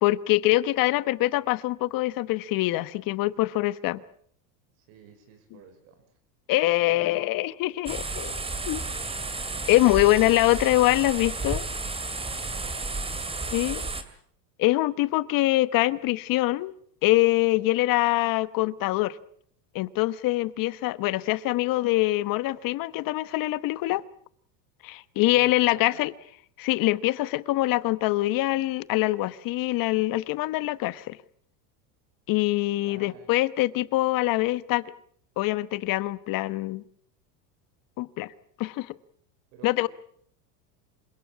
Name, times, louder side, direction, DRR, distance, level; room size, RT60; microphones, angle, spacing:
voice 1, 0.0-4.0 6.5-8.4 8.7-8.8 9.7-11.6 13.5-13.8 14.6-16.7 17.0-19.2 19.7-24.0 24.8-26.1 26.6-31.2 32.3-34.8 35.4-36.8 38.0-38.3 38.6-38.9 39.6-39.9, left 18 dB, 45° left, 1.1 m, -24 dB
voice 2, 0.7-1.0 4.8-6.0 6.8-7.2 8.6-9.7 12.3-13.9 25.2-26.1 32.8-33.3 39.5-39.9, right 7 dB, 60° right, 5.0 m, -51 dB
sound 1, 7.9-14.0, right 3 dB, 10° right, 2.5 m, -32 dB
27.5 x 17.5 x 8.5 m
supercardioid pair, 125°, 48 cm